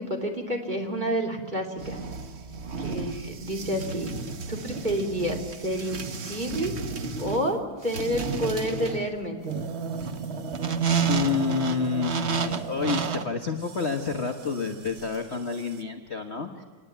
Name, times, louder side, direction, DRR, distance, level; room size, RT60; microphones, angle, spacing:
voice 1, 0.0-2.0 2.8-4.1 4.5-6.7 7.2-9.4, equal, 20° right, 2 dB, 3.0 m, -29 dB
sound 1, 1.8-15.8, right 5 dB, 45° right, 0.9 m, -32 dB
voice 2, 11.1-16.6, left 5 dB, 35° left, 5 dB, 1.3 m, -29 dB
28.0 x 20.0 x 9.3 m, 1.5 s
omnidirectional pair, 2.4 m